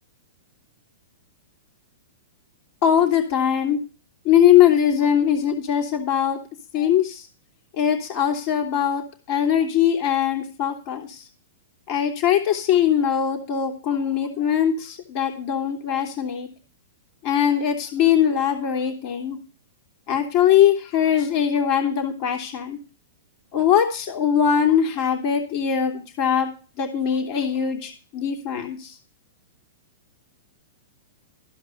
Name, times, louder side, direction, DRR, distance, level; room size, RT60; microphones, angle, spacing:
voice 1, 2.8-3.8 4.2-6.4 6.7-7.2 7.8-9.0 9.3-11.2 11.9-16.5 17.2-19.4 20.1-22.8 23.5-26.5 26.8-28.9, left 9 dB, 45° left, 2 dB, 3.1 m, -21 dB
14.5 x 5.4 x 8.0 m, 0.34 s
hypercardioid pair, 130°, 0 cm